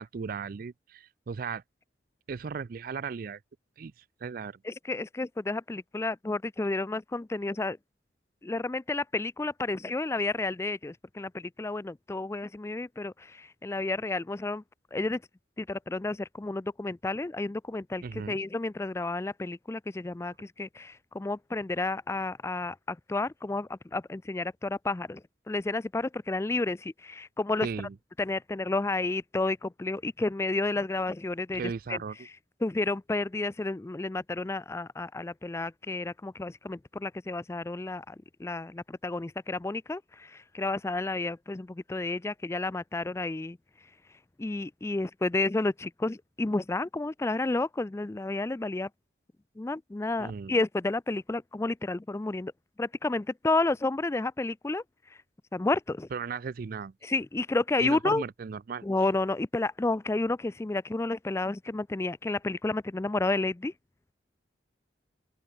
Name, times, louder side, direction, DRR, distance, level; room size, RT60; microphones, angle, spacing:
voice 1, 0.0-1.6 2.3-3.4 3.8-3.9 4.2-4.6 18.0-18.4 27.6-28.0 31.5-32.2 50.2-50.5 56.1-56.9 57.8-58.8, right 5 dB, 50° right, 0.4 m, -36 dB
voice 2, 4.6-7.8 8.4-14.6 14.9-15.2 15.6-25.2 25.5-27.7 28.2-32.0 32.6-43.6 44.4-48.9 49.6-52.5 52.8-54.8 55.5-56.1 57.0-58.2 58.8-63.7, left 2 dB, 15° left, 0.3 m, -31 dB
open air
head